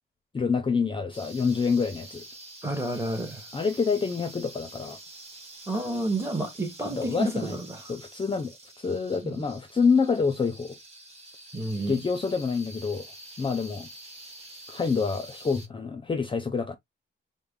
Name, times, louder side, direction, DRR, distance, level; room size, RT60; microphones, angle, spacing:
voice 1, 0.3-2.2 3.5-5.0 6.8-7.6 7.9-10.8 11.9-13.1 13.4-13.9 14.7-16.8, left 5 dB, 25° left, 0.5 m, -27 dB
sound 1, 1.1-15.7, right 2 dB, 30° right, 1.3 m, -47 dB
voice 2, 2.6-3.4 5.7-7.8 9.2-9.4 11.5-12.0, right 2 dB, 15° right, 0.9 m, -30 dB
4.0 x 2.1 x 3.6 m
wide cardioid pair, 155°, 21 cm